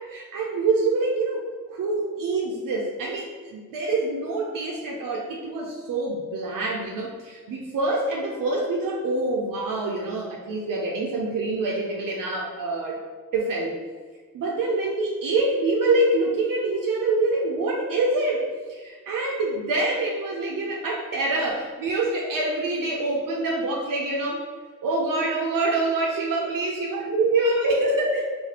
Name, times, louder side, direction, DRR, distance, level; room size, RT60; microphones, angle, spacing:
voice 1, 0.1-1.4 1.7-13.0 13.3-13.7 14.3-24.4 24.8-28.3, right 2 dB, 65° right, -1 dB, 0.7 m, -25 dB
2.7 x 2.4 x 4.2 m, 1.6 s
supercardioid pair, 45°, 36 cm